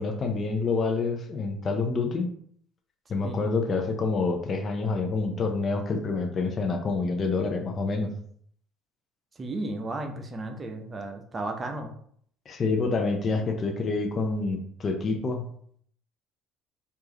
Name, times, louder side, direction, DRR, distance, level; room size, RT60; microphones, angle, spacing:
voice 1, 0.0-2.3 3.1-8.1 12.5-15.5, left 4 dB, 40° left, 4 dB, 0.7 m, -27 dB
voice 2, 9.4-11.9, right 2 dB, 30° right, 4 dB, 0.8 m, -34 dB
4.7 x 2.6 x 3.0 m, 0.62 s
hypercardioid pair, 65°, 0 cm